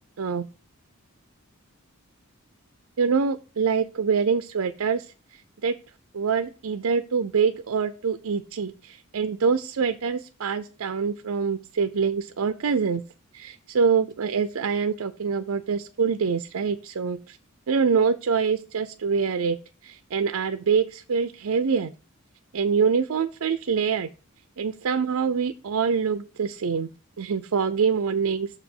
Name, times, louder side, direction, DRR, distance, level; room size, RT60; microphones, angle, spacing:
voice 1, 3.0-5.7 6.1-13.0 13.3-17.4 17.7-19.6 19.8-21.9 22.5-24.1 24.6-26.9 27.2-28.6, right 5 dB, 85° right, 10 dB, 0.5 m, -25 dB
6.7 x 4.9 x 5.4 m, 0.35 s
head